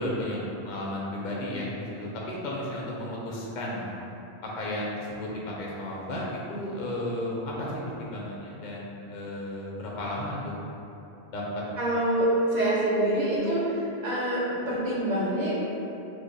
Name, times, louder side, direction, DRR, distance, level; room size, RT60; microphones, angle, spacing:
voice 1, 0.0-4.0 4.4-7.7 8.0-10.5 11.3-11.6, left 1 dB, 55° left, -4 dB, 0.5 m, -33 dB
voice 2, 11.8-15.5, right 1 dB, 45° right, -7 dB, 0.8 m, -26 dB
3.2 x 2.1 x 3.8 m, 2.9 s
omnidirectional pair, 1.1 m